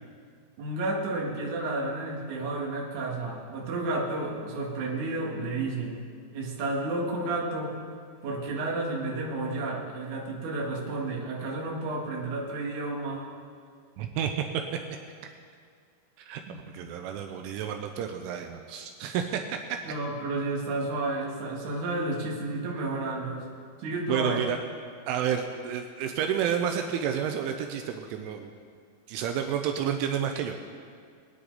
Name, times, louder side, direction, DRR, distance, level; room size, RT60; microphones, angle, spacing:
voice 1, 0.6-5.9 6.3-7.8 8.2-13.3 16.5-16.6 16.8-16.9 19.9-23.4 23.8-24.4, right 2 dB, 55° right, -3 dB, 2.5 m, -31 dB
voice 2, 14.0-14.6 16.2-19.8 24.1-24.6 25.1-28.5 29.1-30.6, right 8 dB, 85° right, 5 dB, 3.1 m, -30 dB
21.5 x 9.7 x 4.0 m, 2.2 s
omnidirectional pair, 5.7 m